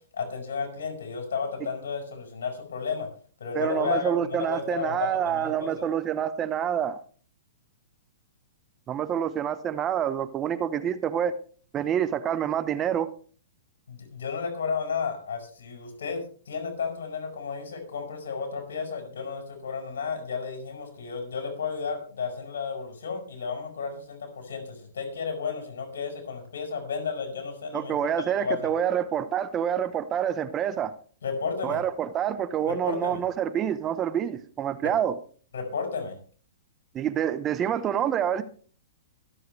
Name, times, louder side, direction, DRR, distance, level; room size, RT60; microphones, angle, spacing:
voice 1, 0.1-3.1 3.4-5.9 13.9-28.0 28.4-28.7 31.2-31.8 32.7-33.2 34.8-34.9 35.5-36.2, left 5 dB, 70° left, 5.3 m, -33 dB
voice 2, 3.5-7.0 8.9-11.3 11.7-13.1 27.7-30.9 31.6-35.1 36.9-38.4, right 9 dB, 25° right, 1.1 m, -27 dB
23.0 x 7.8 x 3.4 m
hypercardioid pair, 120°, 0 cm